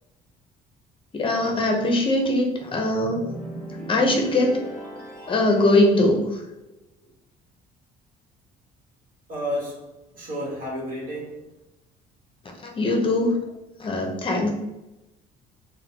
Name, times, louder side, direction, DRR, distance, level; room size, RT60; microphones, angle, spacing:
voice 1, 1.1-3.3 3.9-4.6 5.3-6.2 12.8-13.4 13.8-14.5, left 2 dB, 30° left, 0.6 m, -21 dB
sound 1, 3.0-6.0, right 1 dB, 5° left, 0.9 m, -37 dB
voice 2, 9.3-11.5, equal, 55° right, 1.2 m, -32 dB
3.6 x 2.2 x 2.8 m
cardioid pair, 110°, 17 cm